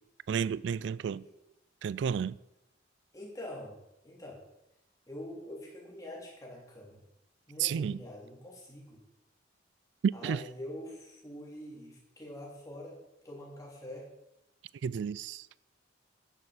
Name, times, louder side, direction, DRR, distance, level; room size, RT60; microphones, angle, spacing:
voice 1, 0.3-1.2 1.8-2.3 7.6-8.0 10.0-10.4 14.8-15.4, right 7 dB, 70° right, 0.3 m, -31 dB
voice 2, 3.1-3.7 4.0-4.4 5.1-7.0 7.5-9.0 10.1-13.0 13.2-14.1, left 1 dB, 20° left, 3.3 m, -45 dB
10.5 x 6.7 x 7.2 m
head